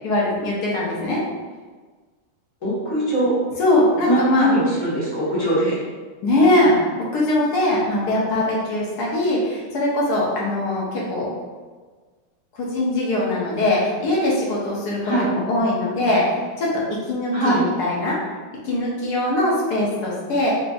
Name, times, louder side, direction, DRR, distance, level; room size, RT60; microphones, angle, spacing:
voice 1, 0.0-1.2 3.6-4.5 6.2-6.8 7.1-11.3 12.5-16.8 17.1-18.2 18.6-20.5, left 1 dB, 60° left, -5 dB, 1.3 m, -21 dB
voice 2, 2.6-3.3 4.1-5.8 15.0-15.3 17.3-17.6, right 1 dB, 40° left, -12 dB, 1.9 m, -21 dB
4.8 x 2.8 x 2.5 m, 1.4 s
omnidirectional pair, 2.3 m